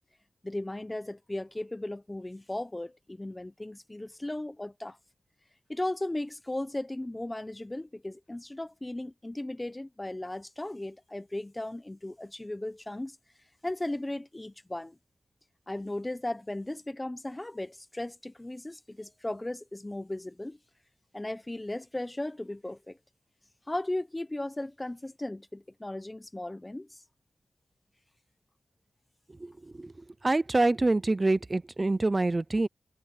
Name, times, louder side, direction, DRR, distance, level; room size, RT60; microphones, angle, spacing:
voice 1, 0.4-5.0 5.7-13.2 13.6-15.0 15.7-20.6 21.1-23.0 23.7-27.0, left 1 dB, 15° left, 0.9 m, -36 dB
voice 2, 30.2-32.7, right 2 dB, 25° right, 0.5 m, -26 dB
wide cardioid pair, 105°, 0 cm